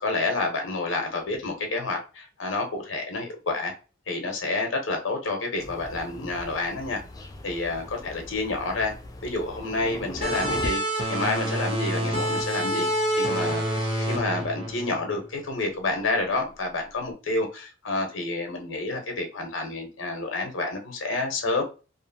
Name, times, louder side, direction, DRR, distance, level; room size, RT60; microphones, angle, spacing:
voice 1, 0.0-3.7 4.1-7.0 7.4-8.9 9.2-10.8 11.1-12.9 13.2-21.6, left 2 dB, 80° left, 0.8 m, -29 dB
Thunder, 5.6-10.7, left 1 dB, 20° left, 0.3 m, -39 dB
sound 1, 10.2-15.5, right 1 dB, 30° right, 0.6 m, -27 dB
2.6 x 2.5 x 2.6 m
head